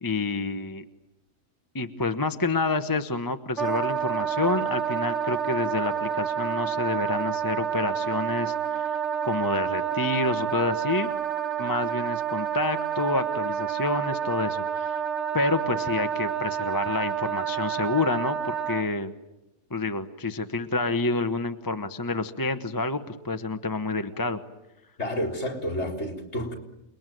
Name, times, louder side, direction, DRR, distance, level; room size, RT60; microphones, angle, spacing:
voice 1, 0.0-0.9 1.7-9.0 9.2-11.1 11.6-15.0 15.3-19.1 19.7-24.4, left 3 dB, 15° left, 9 dB, 1.0 m, -28 dB
Wind instrument woodwind instrument, 3.6-18.8, right 8 dB, 55° right, 2.9 m, -29 dB
voice 2, 25.0-26.5, equal, 55° left, 4 dB, 4.2 m, -30 dB
29.0 x 21.0 x 9.3 m, 0.95 s
omnidirectional pair, 1.4 m